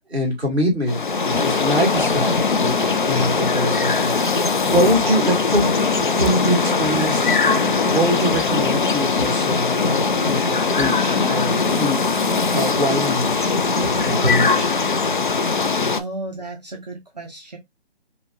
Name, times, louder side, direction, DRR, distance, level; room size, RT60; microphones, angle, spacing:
voice 1, 0.1-5.7 6.1-7.2 7.9-12.0 12.5-13.3 13.7-14.7, equal, 5° right, 1.2 m, -24 dB
sound 1, 0.9-16.0, left 4 dB, 50° left, 0.5 m, -20 dB
voice 2, 15.9-17.6, right 2 dB, 40° right, 0.7 m, -33 dB
3.9 x 2.8 x 2.6 m
hypercardioid pair, 170°, 33 cm